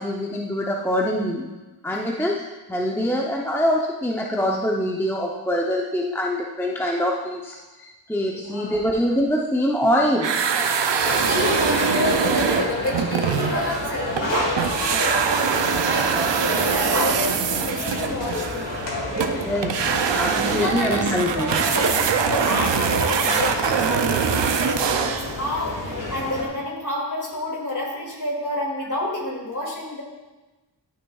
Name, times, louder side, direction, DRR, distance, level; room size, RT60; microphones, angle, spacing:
voice 1, 0.0-1.5 1.8-2.4 2.7-7.6 7.8-10.4 19.4-19.8 20.1-21.6, equal, 5° left, -1 dB, 0.7 m, -24 dB
voice 2, 8.3-8.8 11.2-18.6 19.8-20.1 20.4-30.0, left 1 dB, 45° left, -3 dB, 2.5 m, -29 dB
sound 1, 10.2-14.3 14.6-25.4, right 7 dB, 75° right, 0.6 m, -23 dB
sound 2, 11.0-26.5, left 1 dB, 80° left, 1.7 m, -30 dB
sound 3, 13.7-14.9 16.9-17.5 18.9-19.7 20.5-22.4, right 2 dB, 40° right, 1.3 m, -30 dB
12.0 x 6.2 x 2.4 m, 1.1 s
wide cardioid pair, 60°, 44 cm